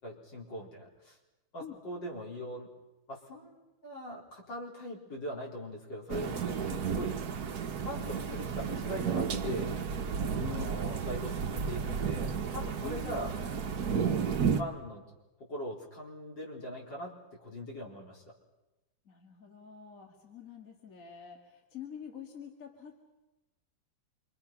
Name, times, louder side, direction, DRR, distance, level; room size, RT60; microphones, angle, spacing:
voice 1, 0.0-1.2 1.5-2.7 3.1-7.2 7.8-9.7 10.5-13.4 13.8-14.3 14.6-15.0 15.5-18.2, equal, 70° left, -3 dB, 5.0 m, -41 dB
sound 1, 6.1-14.6, right 6 dB, 55° right, 1.6 m, -32 dB
voice 2, 6.7-7.0 10.3-10.8 12.8-13.2 19.1-23.0, left 9 dB, 45° left, 1 dB, 2.3 m, -46 dB
27.0 x 24.5 x 5.9 m, 1.1 s
omnidirectional pair, 2.1 m